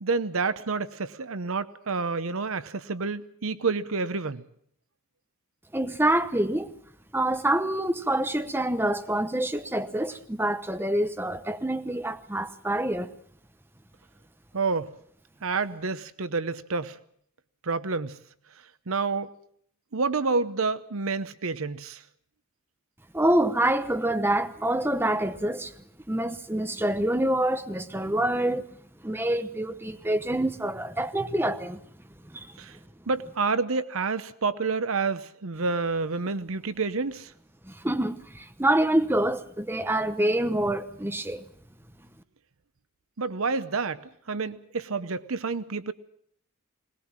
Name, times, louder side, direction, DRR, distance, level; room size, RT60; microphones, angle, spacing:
voice 1, 0.0-4.4 14.5-14.9 15.4-17.0 17.6-18.2 18.9-19.3 19.9-22.0 32.6-32.8 33.1-37.3 43.2-44.0 44.3-45.9, right 4 dB, 70° right, 0.8 m, -29 dB
voice 2, 5.7-6.7 7.1-13.1 23.1-25.7 26.1-28.7 29.0-31.8 32.3-32.5 37.8-41.4, right 1 dB, 10° right, 0.9 m, -26 dB
21.0 x 19.5 x 7.4 m
head